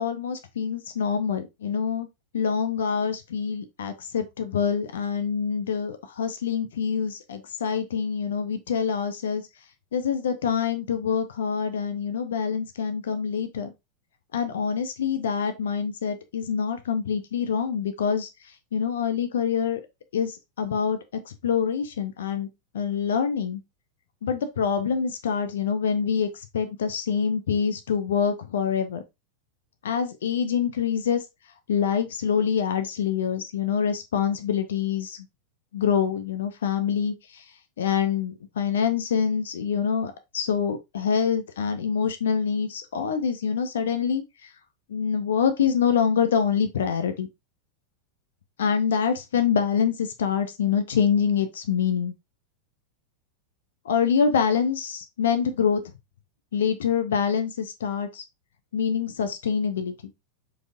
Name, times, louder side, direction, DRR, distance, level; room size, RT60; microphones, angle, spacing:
voice 1, 0.0-2.1 2.3-9.4 9.9-13.7 14.3-18.3 18.7-19.8 20.1-21.0 21.3-22.5 22.7-23.6 24.2-26.3 26.5-29.0 29.8-31.2 31.7-35.2 35.7-37.4 37.8-44.5 44.9-47.3 48.6-52.1 53.9-55.8 56.5-58.2 58.7-59.9, left 7 dB, 60° left, 0.7 m, -25 dB
4.8 x 4.2 x 2.5 m
figure-of-eight pair, 90°, 0 cm